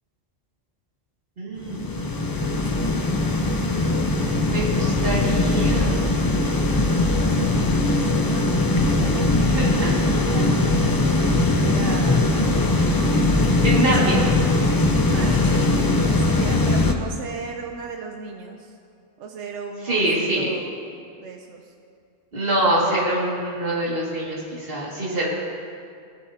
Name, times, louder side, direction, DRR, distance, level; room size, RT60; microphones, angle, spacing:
voice 1, 1.4-2.1 4.5-6.0 9.4-10.4 11.5-11.6 13.6-14.3 19.8-20.5 22.3-25.3, right 1 dB, 50° right, -5 dB, 2.5 m, -25 dB
sound 1, 1.6-16.9, left 2 dB, 25° left, 0.5 m, -20 dB
voice 2, 7.0-9.7 11.1-12.7 14.9-18.7 19.2-20.1 20.4-20.7 21.2-21.7, right 5 dB, 70° right, 2 dB, 1.0 m, -37 dB
18.0 x 9.9 x 2.8 m, 2.3 s
omnidirectional pair, 1.3 m